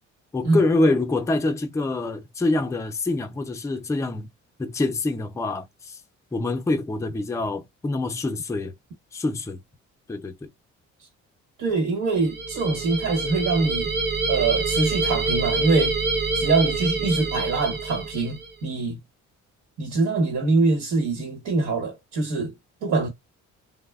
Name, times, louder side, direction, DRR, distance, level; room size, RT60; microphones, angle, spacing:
voice 1, 0.3-4.3 4.6-6.0 6.3-8.7 9.1-9.6 10.1-10.5, left 2 dB, 10° left, 0.4 m, -25 dB
voice 2, 11.6-13.9 14.3-16.0 16.3-19.0 19.8-22.5 22.8-23.1, right 3 dB, 70° right, 1.1 m, -24 dB
sound 1, 12.1-18.5, right 3 dB, 35° right, 0.6 m, -26 dB
3.2 x 2.0 x 2.2 m
cardioid pair, 90°, 30 cm